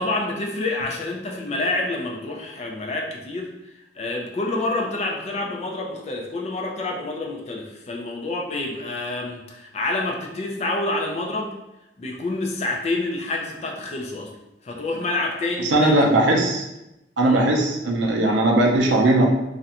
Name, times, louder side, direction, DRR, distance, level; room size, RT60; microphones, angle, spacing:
voice 1, 0.0-3.5 3.9-11.5 12.0-14.3 14.6-16.1 17.2-17.5, left 2 dB, 35° left, 0 dB, 0.3 m, -28 dB
voice 2, 15.6-16.6 17.2-19.3, right 1 dB, 75° right, 0 dB, 0.5 m, -18 dB
2.4 x 2.1 x 2.8 m, 0.92 s
head